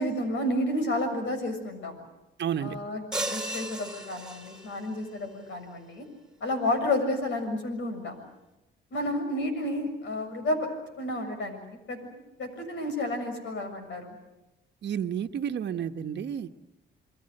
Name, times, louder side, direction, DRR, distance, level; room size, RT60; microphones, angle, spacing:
voice 1, 0.0-2.1 2.6-6.1 6.4-8.3 8.9-10.7 11.0-12.0 12.4-14.2, left 1 dB, 70° left, 6 dB, 6.9 m, -31 dB
voice 2, 2.4-2.8 14.8-16.5, right 8 dB, 60° right, 7 dB, 1.3 m, -31 dB
sound 1, 3.1-4.9, right 1 dB, 5° right, 3.4 m, -35 dB
28.5 x 22.5 x 7.9 m, 0.97 s
cardioid pair, 90°, 20 cm